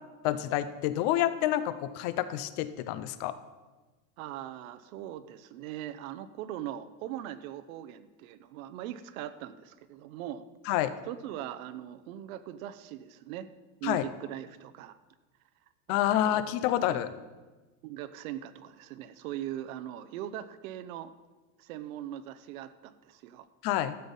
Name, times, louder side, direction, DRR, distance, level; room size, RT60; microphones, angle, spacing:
voice 1, 0.2-3.3 10.7-10.9 13.8-14.0 15.9-17.1 23.6-24.0, left 12 dB, 35° left, 14 dB, 0.4 m, -28 dB
voice 2, 4.2-10.4 11.1-13.5 13.8-15.0 15.9-16.3 16.9-17.0 17.8-21.1 21.6-23.5, right 12 dB, 75° right, 12 dB, 0.8 m, -40 dB
12.5 x 8.0 x 5.3 m, 1.2 s
supercardioid pair, 175°, 41 cm